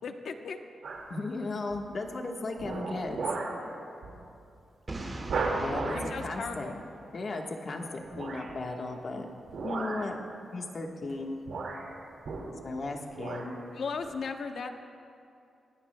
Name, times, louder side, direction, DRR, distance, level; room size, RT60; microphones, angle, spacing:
voice 1, 0.0-0.6 5.9-6.8 13.7-14.7, left 5 dB, 65° left, 6 dB, 0.9 m, -36 dB
sound 1, 0.8-1.2 1.7-2.1 2.6-3.6 4.0-4.2 4.6-4.7 5.2-6.2 8.1-8.6 9.5-10.1 11.0-11.2 11.5-12.8 13.1-13.5 14.0-14.1, right 3 dB, 80° right, 2.1 m, -35 dB
voice 2, 1.1-3.2 5.6-6.0 6.2-6.7 7.1-7.8 8.2-9.3 9.6-10.2 10.5-11.4 12.6-13.6, left 2 dB, 40° left, 2 dB, 1.3 m, -35 dB
Boom, 4.9-7.7, right 2 dB, 25° right, 1.8 m, -41 dB
24.5 x 17.0 x 2.3 m, 2.6 s
wide cardioid pair, 130°, 0 cm